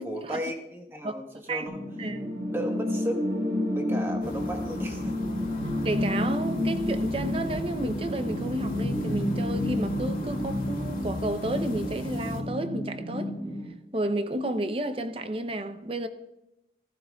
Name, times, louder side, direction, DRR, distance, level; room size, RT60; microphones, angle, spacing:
voice 1, 0.0-1.8 2.5-5.2, equal, 15° right, 1.1 m, -35 dB
sound 1, 1.7-13.7, left 1 dB, 75° right, 4.9 m, -30 dB
voice 2, 2.0-2.3 5.8-13.3 13.9-16.1, right 1 dB, 30° right, 0.6 m, -31 dB
sound 2, 4.2-12.4, left 1 dB, 50° left, 1.8 m, -37 dB
15.0 x 14.0 x 2.3 m
head